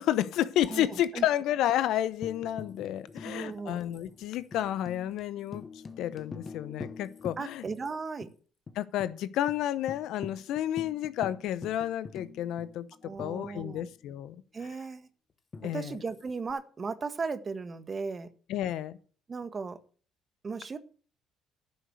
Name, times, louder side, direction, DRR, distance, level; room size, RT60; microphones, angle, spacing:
voice 1, 0.0-5.6 6.0-7.6 8.7-14.4 15.6-16.0 18.5-19.0, left 12 dB, 70° left, 16 dB, 0.8 m, -31 dB
voice 2, 0.7-1.2 3.2-3.8 7.4-8.3 13.0-13.9 14.5-15.1 15.6-18.3 19.3-19.8 20.4-20.8, right 4 dB, 35° right, 11 dB, 1.5 m, -36 dB
Tambourine, 2.2-7.9 8.2-8.3 8.7-9.1 9.5-9.6 9.9-14.0 15.5-16.5, left 4 dB, 35° left, 1.2 m, -45 dB
11.0 x 6.5 x 8.1 m, 0.42 s
hypercardioid pair, 60°, 0 cm